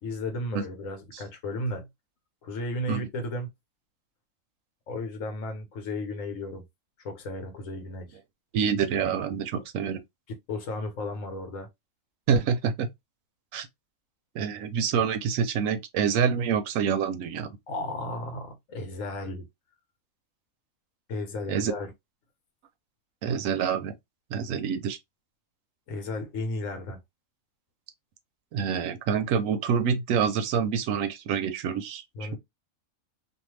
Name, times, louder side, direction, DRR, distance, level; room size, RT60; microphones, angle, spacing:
voice 1, 0.0-1.9 2.4-3.5 4.9-6.6 7.0-8.2 10.5-11.7 17.7-19.4 21.1-21.9 25.9-27.0 32.1-32.4, left 1 dB, 70° left, 1.2 m, -34 dB
voice 2, 8.5-10.0 12.3-12.9 13.5-13.7 14.3-17.5 21.5-21.7 23.2-24.0 24.3-25.0 28.5-32.4, right 7 dB, 75° right, 1.0 m, -27 dB
2.6 x 2.4 x 3.1 m
omnidirectional pair, 1.4 m